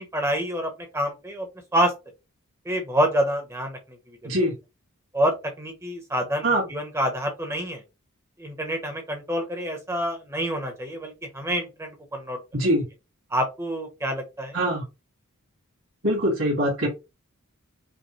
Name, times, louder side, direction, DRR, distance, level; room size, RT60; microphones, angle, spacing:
voice 1, 0.0-1.9 2.6-4.2 5.1-7.8 8.4-12.4 13.3-14.6, equal, 10° right, 3 dB, 0.9 m, -27 dB
voice 2, 12.5-12.9 14.5-14.8 16.0-16.9, right 1 dB, 65° right, -4 dB, 2.0 m, -23 dB
5.2 x 2.1 x 3.1 m, 0.25 s
head